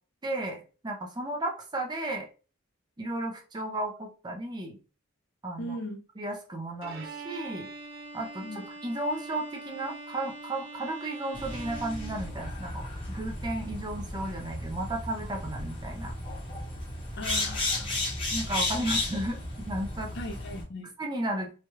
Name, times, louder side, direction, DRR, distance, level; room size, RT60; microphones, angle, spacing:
voice 1, 0.2-2.3 3.0-4.8 5.4-5.8 6.2-7.7 8.1-16.1 18.3-20.1 21.0-21.5, right 1 dB, 20° right, 0.5 m, -34 dB
voice 2, 5.6-6.0 8.4-8.7 17.2-18.1 20.1-20.9, left 1 dB, 55° left, 0.5 m, -38 dB
Bowed string instrument, 6.8-12.7, right 2 dB, 70° right, 0.9 m, -43 dB
sound 1, 11.3-20.6, left 2 dB, 25° left, 0.8 m, -34 dB
3.1 x 2.3 x 2.7 m
head